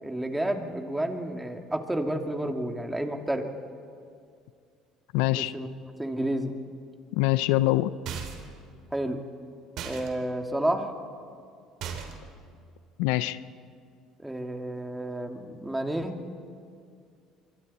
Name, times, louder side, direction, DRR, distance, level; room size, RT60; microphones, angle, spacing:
voice 1, 0.0-3.5 5.3-5.7 6.0-6.5 8.9-9.2 9.8-10.9 14.2-16.2, right 1 dB, 10° right, 4 dB, 2.5 m, -30 dB
voice 2, 5.1-5.5 7.1-7.9 13.0-13.4, left 17 dB, 80° left, 15 dB, 0.6 m, -24 dB
sound 1, 8.1-8.6 9.8-10.1 11.8-12.3, right 7 dB, 65° right, 3.1 m, -36 dB
26.0 x 24.5 x 4.3 m, 2.3 s
hypercardioid pair, 75°, 0 cm